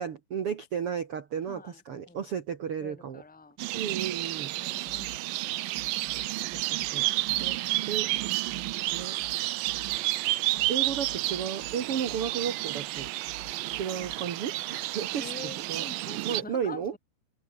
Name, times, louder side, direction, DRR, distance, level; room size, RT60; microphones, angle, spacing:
voice 1, 0.0-3.2 3.7-4.5 6.5-7.1 7.4-8.1 8.9-9.2 10.7-13.1 13.7-15.9 16.2-16.9, right 7 dB, 60° right, 1.5 m, -33 dB
voice 2, 1.4-1.8 2.1-2.2 2.8-3.6 4.6-5.6 6.0-6.6 10.5-10.7 14.9-17.0, left 3 dB, ahead, 3.3 m, -46 dB
sound 1, 3.6-16.4, right 18 dB, 80° right, 2.0 m, -31 dB
sound 2, 4.9-14.3, right 3 dB, 25° right, 5.1 m, -48 dB
omnidirectional pair, 4.8 m